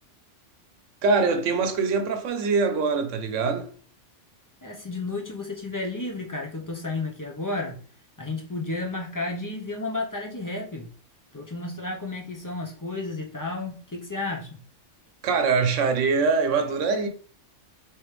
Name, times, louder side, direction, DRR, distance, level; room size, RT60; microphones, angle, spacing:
voice 1, 1.0-3.7 15.2-17.1, right 4 dB, 90° right, 1.0 m, -23 dB
voice 2, 4.6-7.8 8.2-10.9 11.3-14.6, left 2 dB, 25° left, 0.5 m, -32 dB
4.9 x 3.1 x 3.1 m
omnidirectional pair, 1.2 m